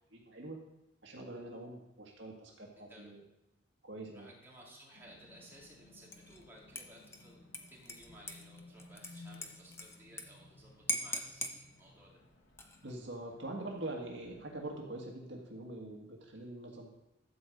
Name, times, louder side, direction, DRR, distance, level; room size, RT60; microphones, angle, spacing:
voice 1, 0.1-0.6 1.0-3.2 3.8-4.3 12.8-16.9, right 2 dB, 65° right, -1 dB, 1.8 m, -44 dB
sound 1, 3.9-9.4, left 2 dB, 30° left, 3.1 m, -70 dB
voice 2, 4.1-12.2, equal, 10° right, -5 dB, 3.3 m, -57 dB
sound 2, 4.9-14.8, left 2 dB, 65° left, 1.5 m, -58 dB
Dishes pots and pans / Liquid, 6.1-6.4 6.8-10.2 10.5-10.6 10.9-11.6 12.4-12.9, left 1 dB, 15° left, 0.9 m, -41 dB
12.5 x 5.2 x 7.9 m, 0.95 s
head